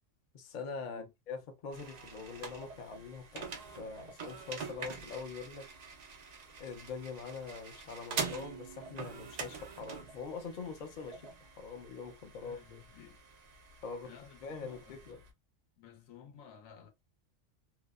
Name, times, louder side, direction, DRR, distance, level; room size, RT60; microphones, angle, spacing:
voice 1, 0.3-3.5 3.8-5.7 6.6-12.8 13.8-14.1 14.4-15.2, left 5 dB, 50° left, 0.6 m, -43 dB
sound 1, 1.7-15.3, right 5 dB, 85° right, 0.3 m, -45 dB
voice 2, 12.4-13.2 14.0-15.2 15.8-16.9, left 8 dB, 85° left, 1.1 m, -54 dB
2.7 x 2.0 x 2.3 m
omnidirectional pair, 1.4 m